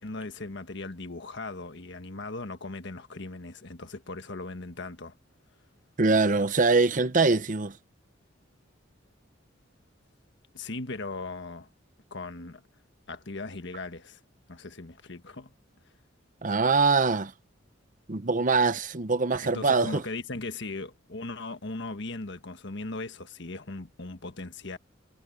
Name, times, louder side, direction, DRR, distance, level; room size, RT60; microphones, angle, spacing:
voice 1, 0.0-5.1 10.5-11.7 12.1-12.6 13.1-14.2 14.5-15.5 19.4-24.8, left 3 dB, 60° left, 1.5 m, -38 dB
voice 2, 6.0-7.8 16.4-17.3 18.1-20.0, right 4 dB, 40° right, 0.8 m, -23 dB
head